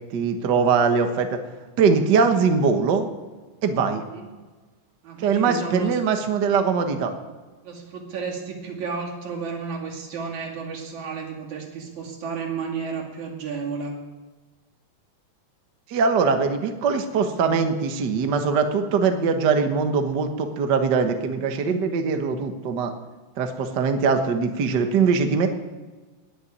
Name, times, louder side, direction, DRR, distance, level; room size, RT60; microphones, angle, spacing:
voice 1, 0.0-1.4 1.8-3.1 3.6-4.0 5.2-7.1 15.9-22.9 23.4-25.5, right 5 dB, 75° right, 6 dB, 0.9 m, -22 dB
voice 2, 3.9-4.3 5.0-6.0 7.6-14.0, right 5 dB, 60° right, 0 dB, 3.6 m, -32 dB
19.5 x 7.0 x 9.5 m, 1.3 s
omnidirectional pair, 4.0 m